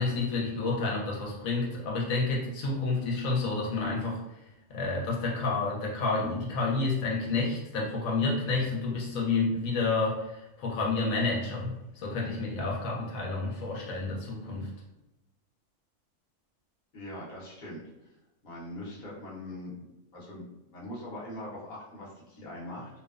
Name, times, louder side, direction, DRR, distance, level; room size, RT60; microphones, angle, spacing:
voice 1, 0.0-4.2 4.7-14.7, left 3 dB, 85° left, -2 dB, 1.0 m, -30 dB
voice 2, 16.9-17.8 18.4-19.9 20.1-22.9, left 1 dB, 45° left, -6 dB, 0.9 m, -41 dB
2.7 x 2.0 x 2.3 m, 0.97 s
omnidirectional pair, 1.4 m